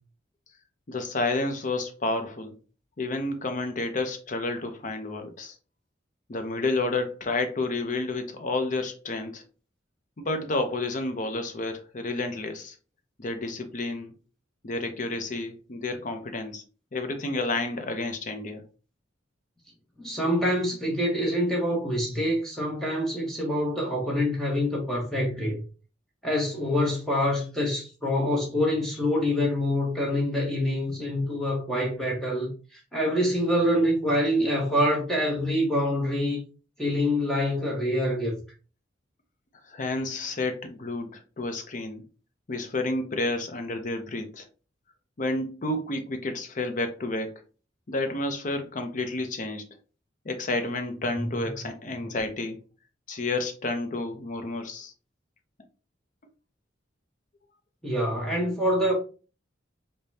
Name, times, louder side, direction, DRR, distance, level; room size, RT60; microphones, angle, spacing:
voice 1, 0.9-2.5 3.0-5.6 6.3-9.4 10.2-12.8 13.2-14.1 14.6-16.6 16.9-18.6 39.7-42.0 42.5-44.5 45.2-47.4 47.9-49.7 50.2-52.6 53.1-54.9, left 2 dB, 40° left, 0.6 m, -30 dB
voice 2, 20.0-25.6 26.2-36.4 36.8-38.3 51.2-51.3 57.8-58.9, equal, ahead, 0.9 m, -26 dB
5.0 x 2.2 x 2.7 m
head